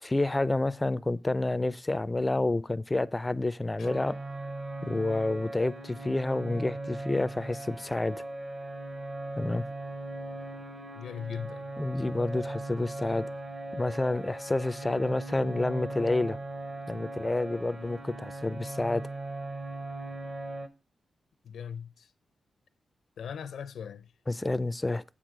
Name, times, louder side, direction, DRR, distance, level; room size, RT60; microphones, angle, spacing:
voice 1, 0.0-4.2 4.8-8.2 9.4-9.6 11.8-13.3 13.7-16.4 16.9-19.0 24.3-25.0, left 2 dB, 15° left, 0.3 m, -29 dB
sound 1, 3.8-20.7, right 2 dB, 30° right, 0.7 m, -39 dB
voice 2, 11.0-11.7 21.4-22.1 23.2-24.1, left 7 dB, 90° left, 0.6 m, -39 dB
8.6 x 6.2 x 4.9 m
wide cardioid pair, 145°, 0 cm